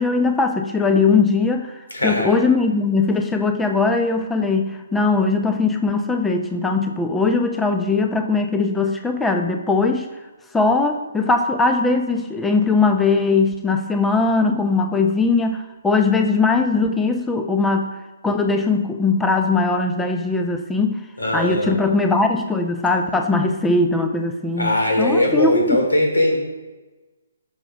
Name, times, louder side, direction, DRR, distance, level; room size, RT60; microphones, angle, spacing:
voice 1, 0.0-10.1 10.5-21.0 21.3-25.8, left 3 dB, 5° left, 5 dB, 0.7 m, -20 dB
voice 2, 1.9-2.3 21.2-21.8 24.6-26.4, left 1 dB, 85° left, 1 dB, 3.8 m, -20 dB
12.0 x 6.6 x 5.3 m, 1.2 s
figure-of-eight pair, 140°, 0 cm